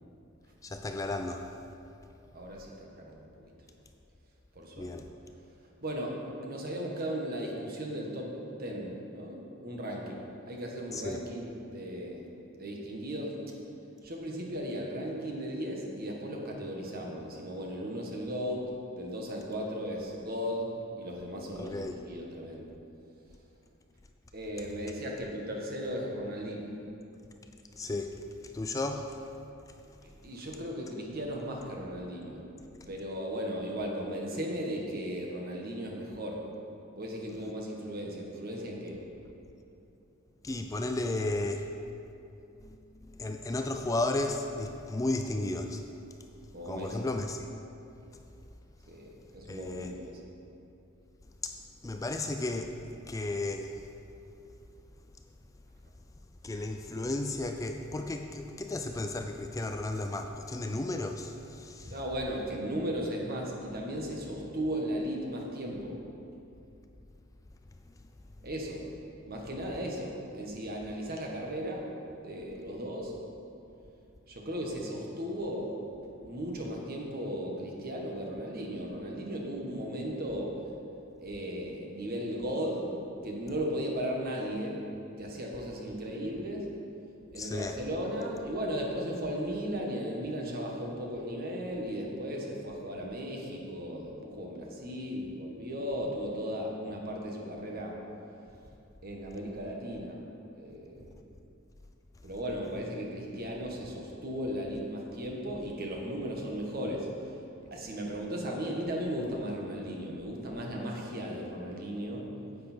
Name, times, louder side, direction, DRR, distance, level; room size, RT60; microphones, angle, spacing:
voice 1, 0.6-1.5 4.8-5.0 10.9-11.2 21.6-22.0 27.8-28.2 28.5-29.1 40.4-41.7 43.2-45.8 46.7-47.5 49.5-49.9 51.4-51.5 51.8-52.7 53.1-53.8 56.4-62.0 87.4-87.8, left 2 dB, 15° left, 5 dB, 0.3 m, -33 dB
voice 2, 2.3-3.5 4.5-4.9 5.8-8.3 8.6-12.3 12.6-13.4 14.0-20.7 21.0-22.7 24.3-26.7 30.2-32.4 32.9-36.4 36.9-39.0 46.5-47.0 48.9-50.2 61.9-66.0 68.4-68.8 69.2-71.9 72.2-73.1 74.3-75.7 76.2-80.5 81.2-82.9 83.2-84.8 85.2-86.7 87.3-98.0 99.0-100.2 100.5-101.1 102.2-107.3 107.7-112.2, equal, 50° right, -1 dB, 1.5 m, -36 dB
10.0 x 8.2 x 4.4 m, 2.7 s
head